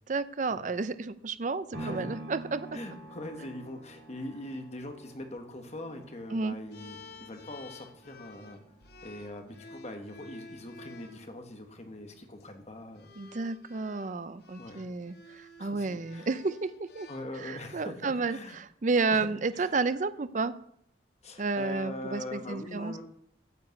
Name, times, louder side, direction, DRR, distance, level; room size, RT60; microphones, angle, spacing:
voice 1, 0.1-2.8 6.3-6.6 13.2-17.1 17.4-20.5 21.4-23.0, right 3 dB, 40° right, 14 dB, 0.5 m, -31 dB
sound 1, 1.7-9.8 10.3-10.4, right 2 dB, 65° right, 2.2 m, -47 dB
voice 2, 2.7-8.6 9.0-13.4 14.6-14.9 15.6-16.3 17.1-18.6 19.1-19.3 19.5-19.8 21.2-23.0, left 1 dB, 35° left, 5 dB, 1.3 m, -42 dB
sound 2, 6.7-11.2 12.2-12.5 13.0-17.8, left 3 dB, 55° left, 0.9 m, -52 dB
9.6 x 5.2 x 8.2 m, 0.70 s
head